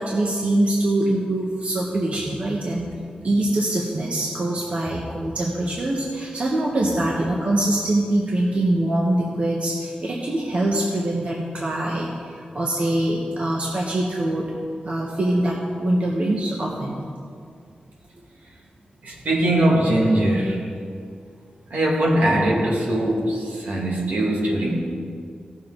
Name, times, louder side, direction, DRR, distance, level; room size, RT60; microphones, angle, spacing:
voice 1, 0.0-2.9 3.2-14.4 14.8-17.0, right 1 dB, 50° right, -3 dB, 1.3 m, -23 dB
voice 2, 19.0-20.7 21.7-24.8, right 1 dB, 75° right, -3 dB, 2.2 m, -21 dB
16.5 x 6.8 x 3.9 m, 2.2 s
wide cardioid pair, 115°, 3 cm